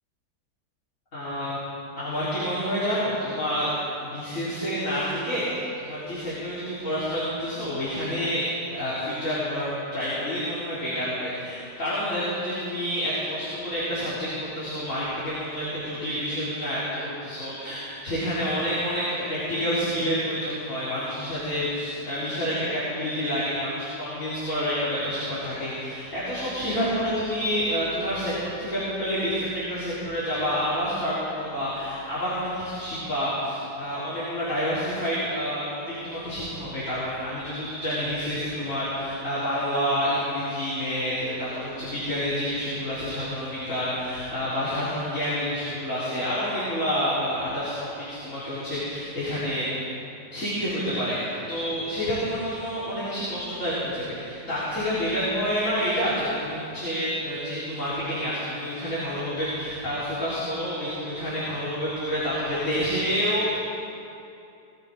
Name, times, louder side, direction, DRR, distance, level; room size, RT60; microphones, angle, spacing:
voice 1, 1.1-1.6 2.0-3.7 4.0-8.4 8.7-49.7 50.3-63.6, equal, 50° left, -12 dB, 4.2 m, -28 dB
20.0 x 15.0 x 3.7 m, 2.6 s
omnidirectional pair, 1.8 m